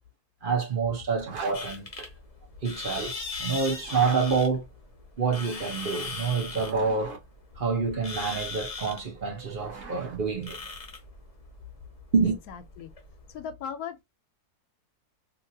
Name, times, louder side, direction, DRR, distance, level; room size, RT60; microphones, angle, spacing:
voice 1, 0.4-2.1 2.6-3.1 3.4-4.6 5.2-7.2 7.6-10.6 12.1-12.4, right 5 dB, 40° right, 0.9 m, -27 dB
Zipper (clothing), 1.2-1.6 3.7-4.2 6.3-7.2 9.1-10.2, right 5 dB, 70° right, 1.4 m, -40 dB
sound 1, 1.5-13.3, left 4 dB, 30° left, 0.7 m, -39 dB
voice 2, 12.2-12.9 13.3-14.0, left 7 dB, 75° left, 1.1 m, -38 dB
2.9 x 2.8 x 2.6 m
omnidirectional pair, 1.7 m